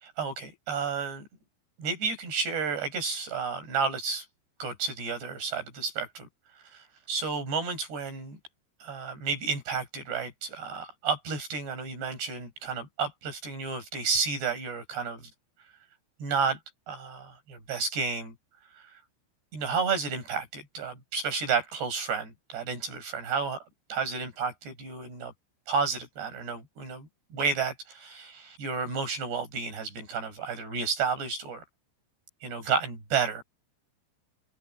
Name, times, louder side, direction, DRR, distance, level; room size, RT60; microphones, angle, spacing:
voice 1, 0.0-1.2 1.8-4.3 4.6-6.3 6.6-8.4 8.8-15.3 16.2-16.6 16.9-18.3 18.7-19.0 19.5-23.6 23.9-25.3 25.7-31.6 32.4-33.4, right 5 dB, 60° right, 9.9 m, -31 dB
omnidirectional pair, 5.6 m